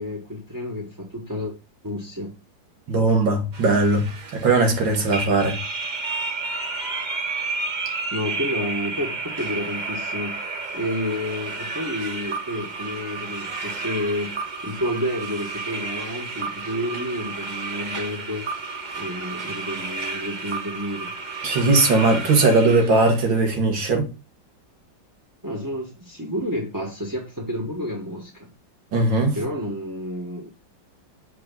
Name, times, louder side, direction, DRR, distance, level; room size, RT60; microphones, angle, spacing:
voice 1, 0.0-1.5 1.8-2.3 8.1-10.3 10.7-14.3 14.6-18.5 19.0-21.1 25.4-28.5 29.3-30.5, left 1 dB, 15° right, 1.0 m, -30 dB
voice 2, 2.9-5.6 21.4-24.1 28.9-29.4, right 3 dB, 85° right, 2.4 m, -19 dB
sound 1, 3.5-23.3, right 3 dB, 40° right, 0.7 m, -31 dB
7.9 x 4.5 x 3.8 m
omnidirectional pair, 2.0 m